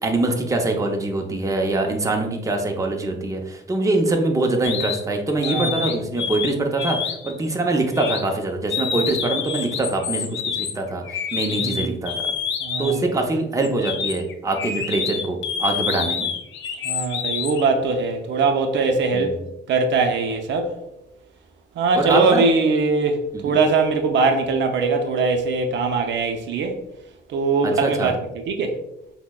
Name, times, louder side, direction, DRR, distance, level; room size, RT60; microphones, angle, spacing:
voice 1, 0.0-12.3 12.8-16.3 19.1-19.4 21.9-22.4 23.3-23.6 27.6-28.1, right 2 dB, 15° right, 0.6 m, -24 dB
sound 1, 4.6-5.0 5.4-6.5 6.8-7.3 7.9-8.2 8.7-13.0 13.6-17.6, left 7 dB, 70° left, 0.5 m, -27 dB
voice 2, 5.4-5.9 11.4-11.8 12.6-13.2 16.8-19.3 19.7-20.8 21.8-23.2 23.4-26.8 27.3-28.1 28.5-28.8, right 4 dB, 65° right, 0.5 m, -21 dB
5.7 x 2.1 x 2.2 m
cardioid pair, 90°, 20 cm